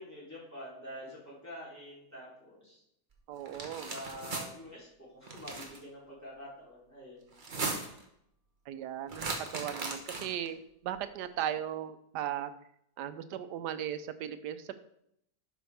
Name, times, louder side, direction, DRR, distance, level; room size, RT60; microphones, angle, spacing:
voice 1, 0.0-2.8 3.9-4.9 5.1-7.3, equal, 10° left, -8 dB, 3.2 m, -46 dB
voice 2, 3.3-3.9 8.7-12.5 13.0-14.7, right 10 dB, 90° right, 11 dB, 1.2 m, -37 dB
sound 1, 3.4-4.5 5.2-5.8 7.3-8.0 9.1-10.5, right 3 dB, 35° right, 1.1 m, -37 dB
11.0 x 5.1 x 3.4 m, 0.75 s
omnidirectional pair, 1.7 m